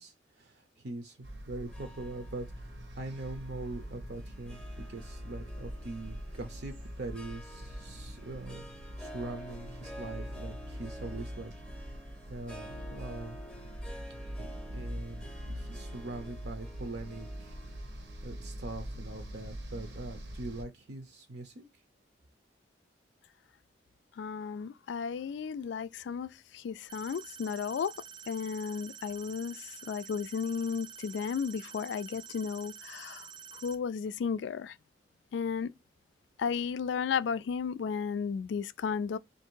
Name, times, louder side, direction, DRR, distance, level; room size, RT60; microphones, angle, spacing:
voice 1, 0.0-11.9 12.3-13.4 14.4-17.6 18.2-21.8, right 2 dB, 60° right, 0.6 m, -43 dB
sound 1, 1.2-20.6, equal, 85° right, 1.0 m, -43 dB
Harp, 1.7-20.1, equal, 5° left, 0.7 m, -51 dB
voice 2, 24.2-27.9 28.3-33.3 33.6-34.8 35.3-35.7 36.4-39.2, left 6 dB, 75° left, 0.3 m, -34 dB
sound 2, 26.9-33.8, right 8 dB, 25° right, 0.3 m, -48 dB
3.4 x 2.6 x 4.5 m
head